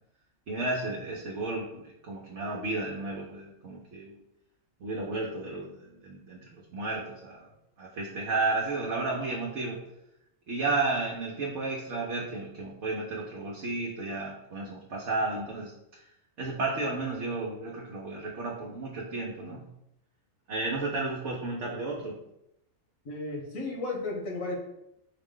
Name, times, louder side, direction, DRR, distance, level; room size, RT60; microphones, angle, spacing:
voice 1, 0.5-4.2 4.8-6.4 6.7-7.5 7.8-9.8 10.5-16.0 16.4-19.6 20.5-22.1, right 3 dB, 65° right, -3 dB, 1.1 m, -33 dB
voice 2, 23.0-24.6, left 2 dB, 80° left, -1 dB, 1.7 m, -34 dB
5.7 x 2.4 x 3.7 m, 0.82 s
omnidirectional pair, 1.4 m